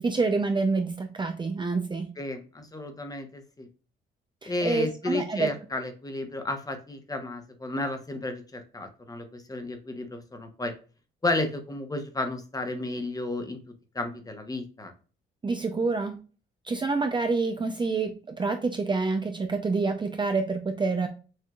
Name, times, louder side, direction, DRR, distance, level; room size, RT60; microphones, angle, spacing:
voice 1, 0.0-2.1 4.4-5.5 15.4-16.2 16.6-21.1, right 4 dB, 25° right, 5 dB, 0.5 m, -27 dB
voice 2, 2.2-3.7 4.4-10.7 11.2-13.6 13.9-14.9, left 2 dB, 20° left, 6 dB, 1.0 m, -32 dB
6.3 x 2.7 x 2.3 m, 0.36 s
cardioid pair, 90°, 20 cm